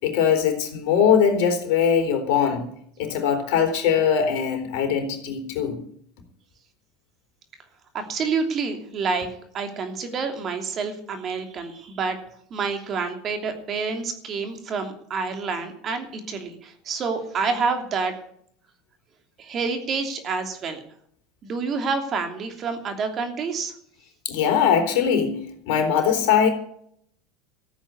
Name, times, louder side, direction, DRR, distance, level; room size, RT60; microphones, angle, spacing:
voice 1, 0.0-2.6 3.0-5.8 24.2-25.4 25.7-26.5, left 7 dB, 65° left, 4 dB, 3.8 m, -21 dB
voice 2, 7.9-9.3 9.5-12.2 12.5-18.1 19.4-20.8 21.4-23.7, right 4 dB, 40° right, 5 dB, 2.9 m, -28 dB
14.5 x 8.8 x 8.3 m, 0.66 s
hypercardioid pair, 90°, 0 cm